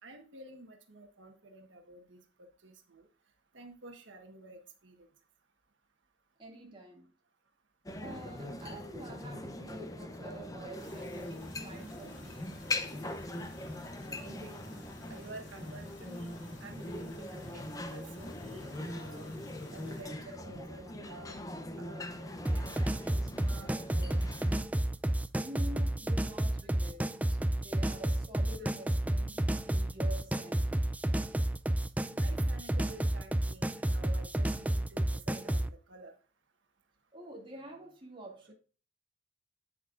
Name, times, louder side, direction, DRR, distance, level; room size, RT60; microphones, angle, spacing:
voice 1, 0.0-3.1 3.5-5.1 14.2-14.6 15.1-19.3 19.7-21.4 21.8-22.8 23.0-24.2 32.1-36.1, right 2 dB, 85° right, 1.3 m, -51 dB
voice 2, 6.4-7.1 8.0-12.5 25.3-27.2 27.5-30.8 37.1-38.5, right 1 dB, 30° right, 2.3 m, -47 dB
sound 1, 7.9-24.6, left 1 dB, 20° left, 0.8 m, -41 dB
sound 2, 10.8-20.0, left 1 dB, 80° left, 4.1 m, -54 dB
sound 3, 22.5-35.7, right 1 dB, 10° right, 0.4 m, -31 dB
9.0 x 8.4 x 2.5 m
head